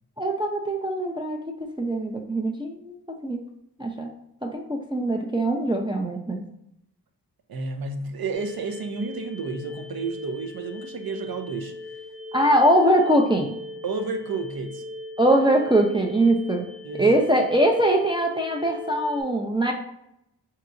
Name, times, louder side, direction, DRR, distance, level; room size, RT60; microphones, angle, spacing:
voice 1, 0.2-3.4 3.8-4.1 4.4-6.4 12.3-13.5 15.2-16.7 17.0-19.7, right 1 dB, 10° right, 1 dB, 0.5 m, -22 dB
voice 2, 7.5-11.7 13.8-14.8 16.8-17.1, right 4 dB, 60° right, 6 dB, 0.6 m, -31 dB
sound 1, 8.3-19.2, left 2 dB, 30° right, 1.0 m, -39 dB
4.5 x 2.9 x 2.5 m, 0.78 s
cardioid pair, 45°, 42 cm